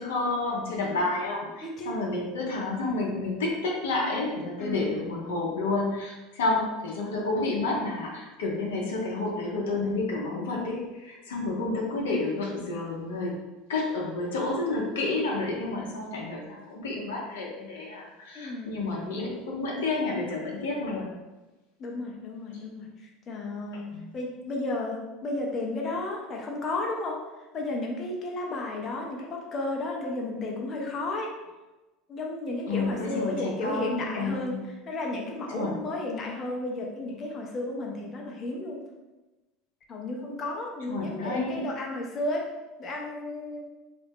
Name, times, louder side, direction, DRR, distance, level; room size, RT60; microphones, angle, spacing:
voice 1, 0.0-13.3 13.7-21.1 23.9-24.1 32.7-34.6 35.5-35.7 40.9-41.6, left 2 dB, 80° left, -2 dB, 0.7 m, -30 dB
voice 2, 2.8-3.1 4.6-4.9 18.3-18.7 21.8-23.9 24.1-27.2 27.5-31.3 32.1-34.6 34.9-38.8 39.9-42.5 42.8-43.6, left 2 dB, 40° left, 0 dB, 0.7 m, -33 dB
3.0 x 2.5 x 3.4 m, 1.1 s
hypercardioid pair, 80°, 0 cm